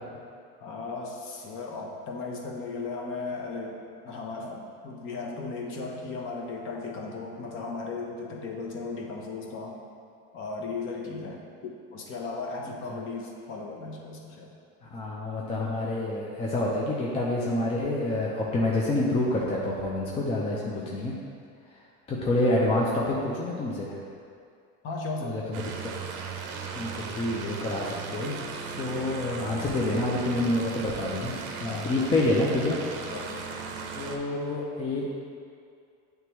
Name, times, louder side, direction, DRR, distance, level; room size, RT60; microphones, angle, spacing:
voice 1, 0.6-3.8 4.0-9.8 10.3-14.5 20.5-21.0 24.8-25.4 31.6-31.9 33.1-33.4 34.8-35.1, left 3 dB, 40° left, 0 dB, 0.8 m, -36 dB
voice 2, 14.9-21.1 22.1-23.9 25.2-25.6 26.7-32.8 33.9-35.1, left 1 dB, 20° left, -4 dB, 0.5 m, -28 dB
sound 1, 25.5-34.2, right 5 dB, 50° right, 0.6 m, -37 dB
9.2 x 3.4 x 3.1 m, 2.4 s
cardioid pair, 160°, 31 cm